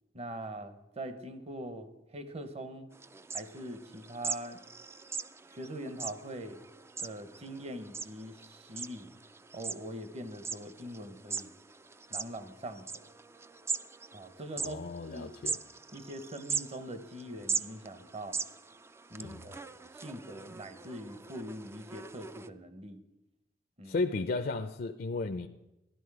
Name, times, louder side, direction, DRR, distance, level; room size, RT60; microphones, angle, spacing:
voice 1, 0.1-2.9 3.3-4.6 5.5-6.6 7.0-9.1 9.5-11.5 12.1-13.1 14.1-14.8 15.0-15.3 15.9-18.4 19.1-23.0 23.8-24.0, right 1 dB, 35° right, 1.0 m, -43 dB
sound 1, 2.9-22.5, right 4 dB, 15° right, 0.3 m, -41 dB
voice 2, 14.6-15.6 19.2-19.4 23.8-25.5, left 3 dB, 55° left, 0.5 m, -34 dB
12.5 x 11.0 x 4.8 m
head